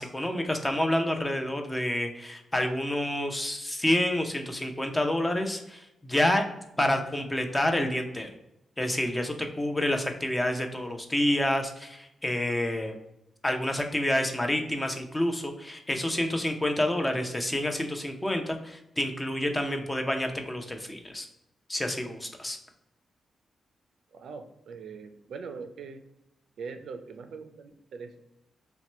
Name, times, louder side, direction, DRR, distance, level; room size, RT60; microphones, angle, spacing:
voice 1, 0.0-6.4 6.8-8.3 8.8-13.0 13.4-21.3 21.7-22.6, left 1 dB, 15° left, 4 dB, 0.6 m, -28 dB
voice 2, 24.1-26.0 26.6-28.2, right 5 dB, 75° right, 7 dB, 0.4 m, -42 dB
2.9 x 2.2 x 4.1 m, 0.87 s
cardioid pair, 70°, 0 cm